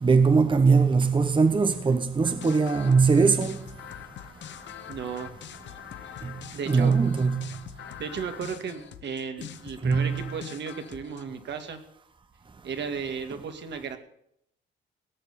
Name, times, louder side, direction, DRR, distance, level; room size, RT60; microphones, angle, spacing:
voice 1, 0.0-3.6 6.7-7.3 9.8-10.1, right 4 dB, 25° right, 1.0 m, -21 dB
sound 1, 2.2-11.2, left 10 dB, 65° left, 1.1 m, -43 dB
voice 2, 4.9-5.3 6.5-6.9 8.0-11.8 12.6-14.0, right 6 dB, 65° right, 2.1 m, -34 dB
18.5 x 6.5 x 8.6 m
cardioid pair, 90°, 20 cm